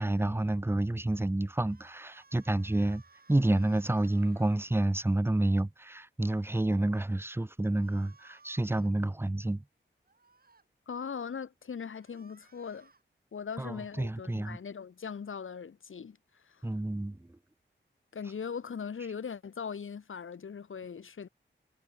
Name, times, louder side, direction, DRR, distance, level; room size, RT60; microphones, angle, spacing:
voice 1, 0.0-3.0 3.3-9.6 13.6-14.6 16.6-17.3, right 1 dB, 10° right, 0.8 m, -29 dB
sound 1, 1.5-4.6 7.7-8.9 10.1-10.6 11.8-13.0, right 4 dB, 50° right, 3.5 m, -61 dB
voice 2, 10.9-12.9 13.3-16.2 16.5-16.7 18.1-21.3, left 6 dB, 90° left, 1.8 m, -40 dB
wide cardioid pair, 110°, 20 cm